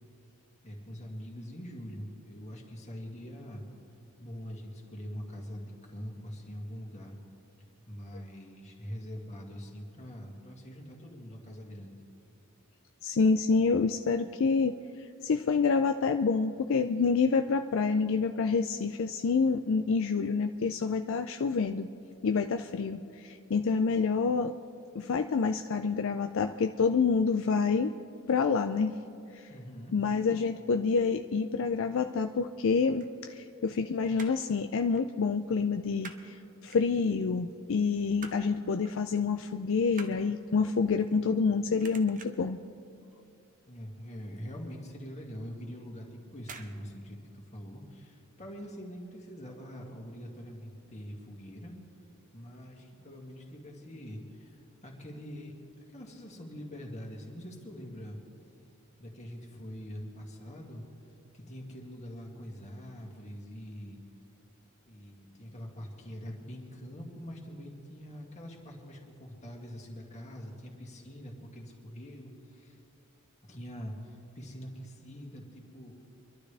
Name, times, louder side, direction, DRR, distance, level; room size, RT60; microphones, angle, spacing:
voice 1, 0.6-3.6 4.2-7.2 7.9-12.0 29.5-29.9 43.7-51.7 52.3-55.5 55.9-58.2 59.0-60.9 61.3-64.0 64.9-72.8 73.5-75.9, equal, 35° left, -1 dB, 2.1 m, -44 dB
voice 2, 13.0-14.8 15.2-21.9 22.2-24.5 24.9-27.9 28.3-29.0 29.3-29.5 29.9-42.6, left 5 dB, 65° left, 7 dB, 0.4 m, -27 dB
sound 1, 33.0-33.8 34.0-34.5 34.9-35.1 35.4-36.3 36.7-37.3 37.7-38.5 38.8-39.1 39.4-41.5 41.8-42.5 43.0-43.3 43.6-43.7 44.0-44.1 44.6-44.7 45.5-45.8 46.4-46.8 47.0-47.1, right 4 dB, 40° right, 0.9 m, -48 dB
24.5 x 12.0 x 3.4 m, 2.5 s
head